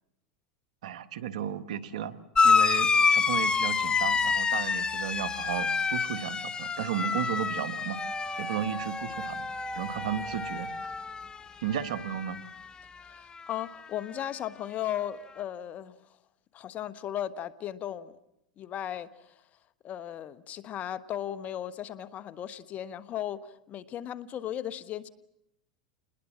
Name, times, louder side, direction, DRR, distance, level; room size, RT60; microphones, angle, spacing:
voice 1, 0.8-2.2 2.4-8.0 8.4-9.5 9.7-10.7 11.6-12.4, right 9 dB, 80° right, 13 dB, 1.3 m, -34 dB
sound 1, 2.4-11.4 11.7-12.4 13.5-13.6, left 5 dB, 20° left, 1.3 m, -28 dB
sound 2, 7.9-12.1 12.3-12.4, right 1 dB, 10° right, 1.0 m, -39 dB
voice 2, 13.0-16.0 16.5-18.2 18.6-19.3 19.8-25.1, left 11 dB, 40° left, 15 dB, 1.2 m, -36 dB
29.0 x 20.5 x 7.4 m, 0.81 s
hypercardioid pair, 105°, 4 cm